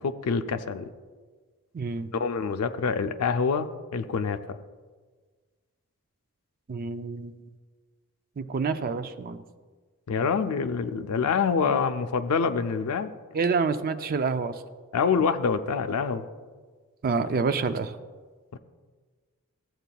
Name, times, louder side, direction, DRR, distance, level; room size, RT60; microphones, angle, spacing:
voice 1, 0.0-0.9 2.1-4.6 10.1-13.1 14.9-16.3 18.5-18.6, left 5 dB, 80° left, 8 dB, 0.4 m, -26 dB
voice 2, 1.7-2.1 6.7-7.4 8.4-9.4 11.6-11.8 13.3-14.6 17.0-18.0, right 4 dB, 40° right, 10 dB, 0.4 m, -28 dB
14.5 x 7.9 x 2.3 m, 1.4 s
head